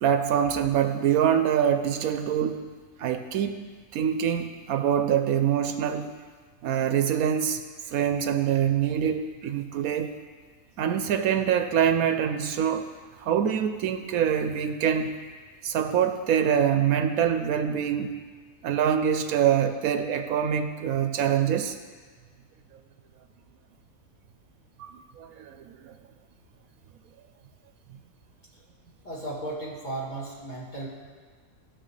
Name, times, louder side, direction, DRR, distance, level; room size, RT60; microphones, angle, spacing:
voice 1, 0.0-2.6 3.0-3.6 3.9-6.1 6.6-7.6 7.9-10.1 10.8-12.9 13.2-15.2 15.6-18.2 18.6-21.7 24.8-25.9, right 9 dB, 85° right, 8 dB, 1.1 m, -25 dB
voice 2, 29.0-30.9, right 2 dB, 30° left, -7 dB, 2.7 m, -35 dB
19.0 x 6.3 x 3.2 m, 1.5 s
omnidirectional pair, 1.5 m